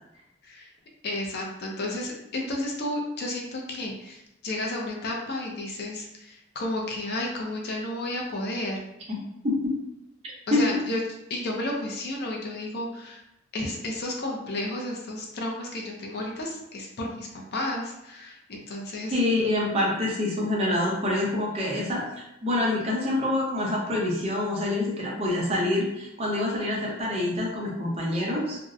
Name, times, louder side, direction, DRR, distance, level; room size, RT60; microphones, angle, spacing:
voice 1, 1.0-8.8 10.5-11.0 11.3-13.2 13.5-19.2, left 1 dB, 55° left, 0 dB, 0.5 m, -32 dB
voice 2, 9.4-9.8 10.5-10.7 19.1-22.0 22.4-28.6, left 1 dB, 30° right, -3 dB, 0.6 m, -26 dB
2.6 x 2.0 x 2.3 m, 0.85 s
head